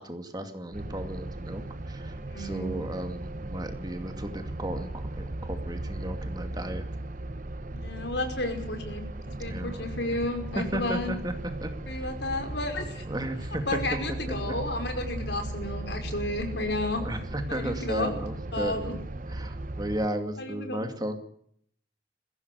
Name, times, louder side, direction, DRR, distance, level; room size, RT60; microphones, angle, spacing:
voice 1, 0.0-6.9 9.3-9.8 10.5-11.3 11.6-11.7 12.0-12.1 13.1-13.6 14.3-14.5 17.0-19.0 19.3-21.2, right 1 dB, 20° right, 7 dB, 2.3 m, -34 dB
sound 1, 0.7-20.1, right 1 dB, 45° right, 1.0 m, -37 dB
voice 2, 2.3-2.8 7.7-11.1 11.9-13.0 13.7-17.0 17.5-18.1 18.5-19.0 20.4-20.8, left 2 dB, 65° left, 6 dB, 5.4 m, -32 dB
21.5 x 16.5 x 8.1 m, 0.66 s
head